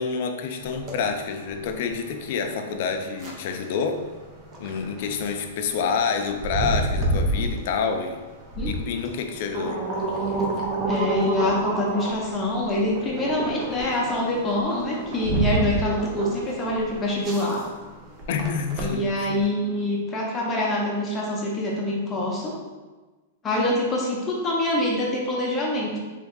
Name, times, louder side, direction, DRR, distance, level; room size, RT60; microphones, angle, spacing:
voice 1, 0.0-4.0 4.6-8.2 8.7-9.8 18.3-19.0 19.3-19.4, left 5 dB, 50° left, 5 dB, 0.5 m, -28 dB
sound 1, 0.6-19.4, right 2 dB, 25° right, 0.6 m, -30 dB
voice 2, 10.9-17.6 18.8-22.5 23.4-26.0, left 1 dB, 15° left, -3 dB, 0.8 m, -25 dB
3.6 x 3.0 x 3.7 m, 1.2 s
supercardioid pair, 160°, 0 cm